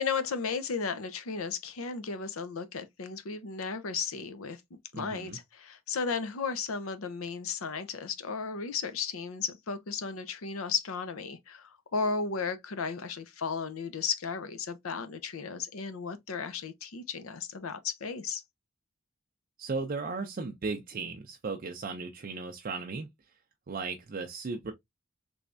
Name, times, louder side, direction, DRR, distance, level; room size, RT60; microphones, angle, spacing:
voice 1, 0.0-4.6 4.9-18.4, left 5 dB, 80° left, 0.6 m, -34 dB
voice 2, 4.9-5.4 19.6-23.1 23.7-24.7, right 4 dB, 40° right, 0.4 m, -36 dB
3.4 x 3.2 x 2.5 m
head